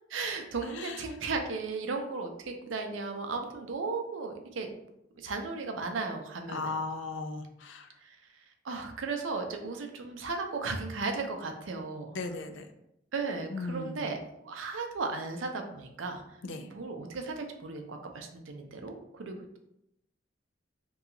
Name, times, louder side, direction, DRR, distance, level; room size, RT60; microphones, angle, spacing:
voice 1, 0.1-4.7 5.2-6.7 8.0-8.2 8.6-12.2 13.1-16.2 16.6-19.6, right 4 dB, 80° right, 4 dB, 0.5 m, -35 dB
voice 2, 6.5-7.9 12.1-12.7 13.5-14.0 16.4-16.7, left 3 dB, 70° left, 7 dB, 0.4 m, -36 dB
2.8 x 2.3 x 3.7 m, 0.81 s
head